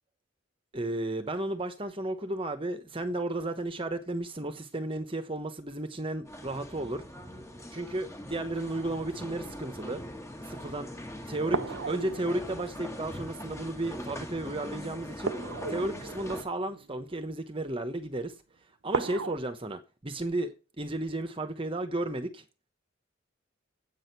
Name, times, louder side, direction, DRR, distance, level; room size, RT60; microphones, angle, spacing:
voice 1, 0.7-7.0 7.7-10.0 10.4-15.4 15.7-22.5, right 2 dB, 25° right, 1.1 m, -34 dB
sound 1, 6.3-16.4, left 1 dB, 15° left, 1.6 m, -41 dB
sound 2, 11.5-13.6 15.2-17.5 18.9-19.4, right 4 dB, 85° right, 0.8 m, -36 dB
8.4 x 6.4 x 8.1 m
head